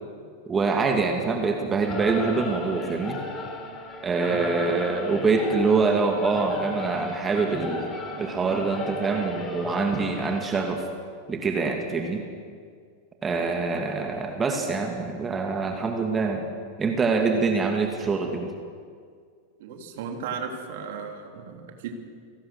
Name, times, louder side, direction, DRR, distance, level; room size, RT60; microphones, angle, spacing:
voice 1, 0.5-3.2 4.0-7.9 8.2-10.8 11.3-12.2 13.2-16.4 16.8-18.5, right 4 dB, 20° right, 3 dB, 2.3 m, -25 dB
Singing / Musical instrument, 1.8-10.7, left 2 dB, 25° left, 3.9 m, -35 dB
voice 2, 19.6-21.9, right 6 dB, 55° right, 3 dB, 3.3 m, -35 dB
29.0 x 18.5 x 6.6 m, 2.1 s
figure-of-eight pair, 90°, 0 cm